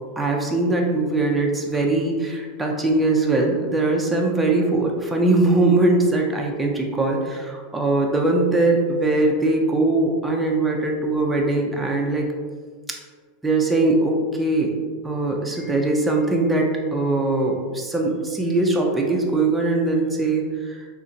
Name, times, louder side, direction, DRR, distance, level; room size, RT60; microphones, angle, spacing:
voice 1, 0.2-12.3 13.4-14.7 15.0-20.9, right 2 dB, 5° right, 0 dB, 0.5 m, -21 dB
3.8 x 2.8 x 2.6 m, 1.5 s
supercardioid pair, 135°, 0 cm